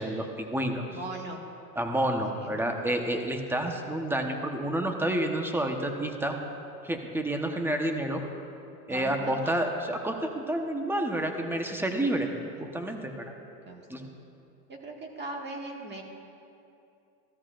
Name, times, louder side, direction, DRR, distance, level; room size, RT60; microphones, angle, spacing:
voice 1, 0.0-0.8 1.8-6.4 6.8-8.2 8.9-12.3 12.6-13.3 13.9-14.1, right 1 dB, 5° right, 3 dB, 1.1 m, -29 dB
voice 2, 0.9-1.4 2.4-2.7 8.9-9.7 12.6-12.8 13.6-14.1 14.7-16.0, right 2 dB, 20° right, 0 dB, 1.8 m, -40 dB
16.5 x 13.0 x 2.5 m, 2.6 s
supercardioid pair, 110°, 47 cm